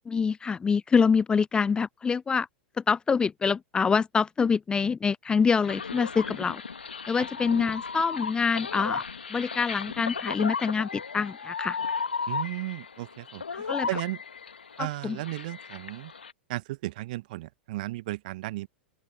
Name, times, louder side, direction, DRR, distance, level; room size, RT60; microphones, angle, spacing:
voice 1, 0.1-2.5 2.8-6.6 7.1-9.0 9.3-11.8 13.5-13.9 14.8-15.2, left 5 dB, 15° left, 0.5 m, -25 dB
sound 1, 5.6-16.3, left 5 dB, 75° left, 2.2 m, -35 dB
voice 2, 12.3-14.2 14.8-16.1 16.5-18.7, right 18 dB, 50° right, 1.3 m, -35 dB
open air
figure-of-eight pair, 90°, 6 cm